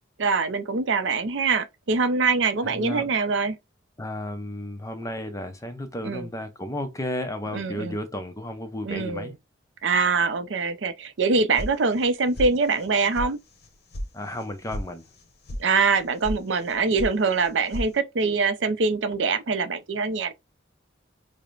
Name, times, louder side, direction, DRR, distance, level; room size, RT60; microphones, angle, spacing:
voice 1, 0.2-3.6 6.0-6.3 7.5-8.0 8.8-9.3 9.8-13.4 15.6-20.3, right 4 dB, 75° right, 0.5 m, -24 dB
voice 2, 2.6-3.1 4.0-9.3 14.1-15.0, left 1 dB, 15° left, 0.6 m, -33 dB
sound 1, 11.6-12.1 12.4-12.9 13.1-13.3 13.6-14.1 14.3-14.8 15.1-15.6 15.9-16.4 16.6-17.1 17.4-17.9, equal, 55° left, 0.9 m, -32 dB
4.9 x 2.1 x 2.4 m
head